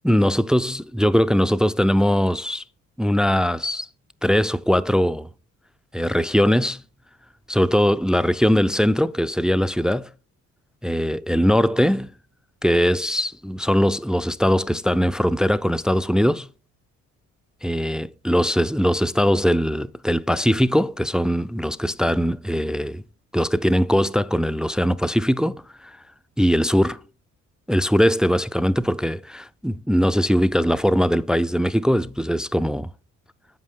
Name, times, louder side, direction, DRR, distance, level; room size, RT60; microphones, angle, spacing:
voice 1, 0.0-2.6 3.0-3.9 4.2-5.3 5.9-6.8 7.5-10.1 10.8-12.1 12.6-16.5 17.6-23.0 23.3-25.6 26.4-27.0 27.7-32.9, equal, ahead, 0.3 m, -20 dB
8.2 x 7.6 x 3.7 m
cardioid pair, 90°, 30 cm